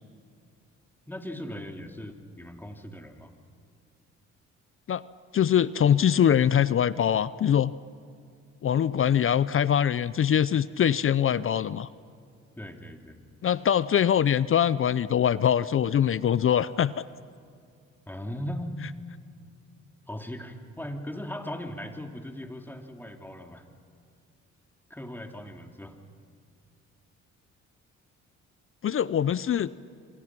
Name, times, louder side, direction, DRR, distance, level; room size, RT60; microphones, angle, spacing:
voice 1, 1.1-3.3 12.6-13.2 18.1-18.8 20.1-23.7 24.9-25.9, left 1 dB, 5° left, 4 dB, 2.7 m, -38 dB
voice 2, 5.3-7.7 8.6-11.9 13.4-17.0 28.8-29.7, left 9 dB, 45° left, 17 dB, 0.6 m, -23 dB
27.0 x 25.5 x 6.1 m, 2.3 s
cardioid pair, 90°, 30 cm